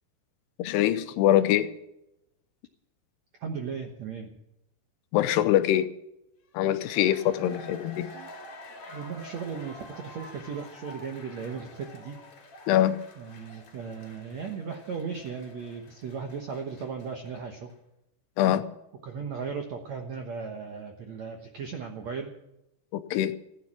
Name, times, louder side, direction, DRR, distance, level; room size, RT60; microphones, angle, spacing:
voice 1, 0.6-1.7 5.1-5.9 6.5-8.1 12.7-13.0 18.4-18.6 22.9-23.3, left 12 dB, 80° left, 11 dB, 2.7 m, -23 dB
voice 2, 3.4-4.3 7.4-7.6 8.1-8.3 8.9-12.2 13.2-17.7 19.0-22.3, right 6 dB, 70° right, 3 dB, 1.6 m, -36 dB
sound 1, 6.6-17.4 17.7-17.8, left 1 dB, 45° left, 3.9 m, -48 dB
15.5 x 9.5 x 8.8 m, 0.87 s
omnidirectional pair, 4.9 m